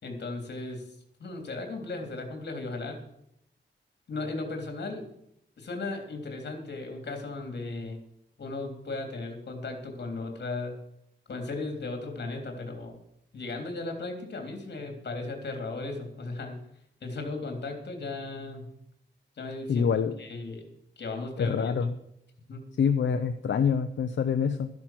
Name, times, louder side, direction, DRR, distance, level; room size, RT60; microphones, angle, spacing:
voice 1, 0.0-0.8 1.2-3.0 4.1-5.1 5.6-8.0 8.4-10.8 11.3-13.0 13.3-16.6 17.0-18.7 19.4-19.9 20.2-20.7 21.0-21.8 22.5-22.6, left 3 dB, 65° left, 4 dB, 3.3 m, -36 dB
voice 2, 19.7-20.1 21.4-21.9 22.8-24.7, left 6 dB, 80° left, 7 dB, 0.8 m, -26 dB
13.5 x 10.5 x 6.0 m, 0.76 s
wide cardioid pair, 170°, 19 cm